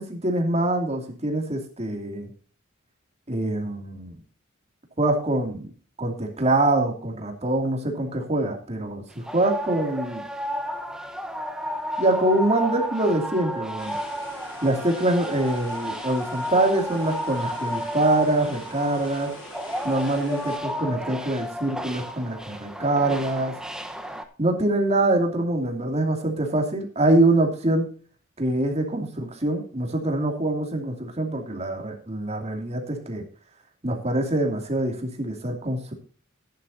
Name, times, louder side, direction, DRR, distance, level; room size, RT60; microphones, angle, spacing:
voice 1, 0.0-2.3 3.3-4.1 5.0-5.7 6.0-10.2 12.0-14.0 14.6-19.3 19.8-23.5 24.4-27.9 28.4-33.2 33.8-35.9, right 1 dB, 35° right, 3 dB, 2.7 m, -24 dB
sound 1, 9.1-24.2, equal, 5° right, 1.1 m, -33 dB
sound 2, 13.8-20.6, left 1 dB, 65° left, 7.1 m, -44 dB
14.5 x 10.5 x 2.7 m, 0.39 s
head